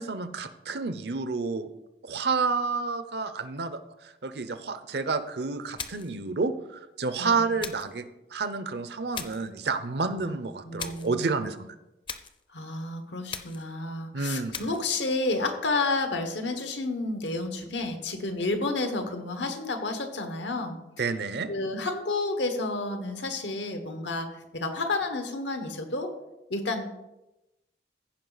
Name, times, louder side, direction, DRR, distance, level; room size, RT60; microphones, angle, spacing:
voice 1, 0.0-1.7 2.0-8.0 8.3-11.7 14.1-14.5 21.0-21.5, right 4 dB, 70° right, 11 dB, 0.7 m, -30 dB
sound 1, 5.8-6.2 7.6-8.0 9.1-9.5 10.8-11.2 12.1-12.4 13.3-13.7 14.5-14.9, left 6 dB, 25° left, 0.5 m, -39 dB
voice 2, 10.6-11.3 12.5-20.8 21.5-24.3 24.5-26.1 26.5-27.0, left 2 dB, 90° left, 6 dB, 1.3 m, -30 dB
15.0 x 5.1 x 4.0 m, 0.96 s
head